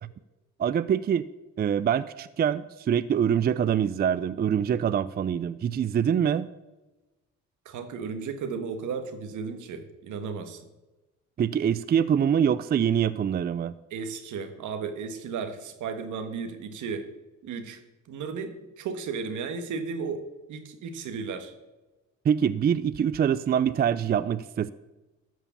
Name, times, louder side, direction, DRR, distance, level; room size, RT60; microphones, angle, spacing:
voice 1, 0.6-1.3 1.6-6.5 11.4-13.7 22.2-24.7, right 8 dB, 35° right, 16 dB, 0.4 m, -24 dB
voice 2, 7.6-10.7 13.9-17.1 17.4-17.8 18.1-21.5, right 5 dB, 80° right, 8 dB, 1.4 m, -34 dB
13.0 x 4.9 x 6.9 m, 1.1 s
cardioid pair, 90°, 30 cm